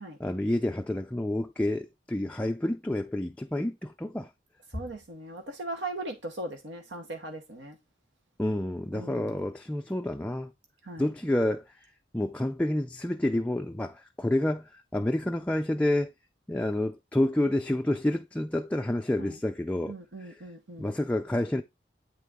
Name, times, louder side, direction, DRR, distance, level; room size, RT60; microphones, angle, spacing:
voice 1, 0.2-4.3 8.4-10.5 11.0-11.7 12.1-16.1 16.5-20.4 20.8-21.6, left 1 dB, 10° left, 0.4 m, -29 dB
voice 2, 4.7-7.8 8.9-9.3 10.8-11.0 19.2-19.4 19.9-20.9, right 2 dB, 85° right, 1.0 m, -39 dB
9.2 x 3.6 x 3.6 m
head